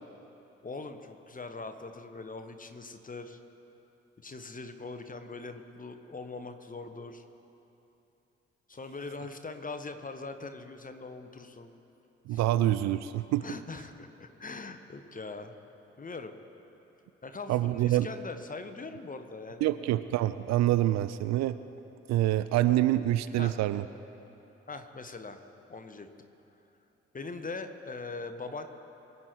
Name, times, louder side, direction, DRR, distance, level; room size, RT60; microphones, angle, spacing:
voice 1, 0.6-3.4 4.2-7.2 8.7-11.7 12.3-12.4 13.4-15.5 16.0-16.4 17.2-19.7 23.4-23.6 24.7-25.4 25.7-26.1 27.1-28.7, left 3 dB, 25° left, 8 dB, 1.3 m, -41 dB
voice 2, 12.3-13.5 17.5-18.1 19.6-21.6 22.1-23.8, right 14 dB, 55° right, 13 dB, 0.5 m, -26 dB
24.0 x 8.2 x 4.6 m, 3.0 s
figure-of-eight pair, 40°, 32 cm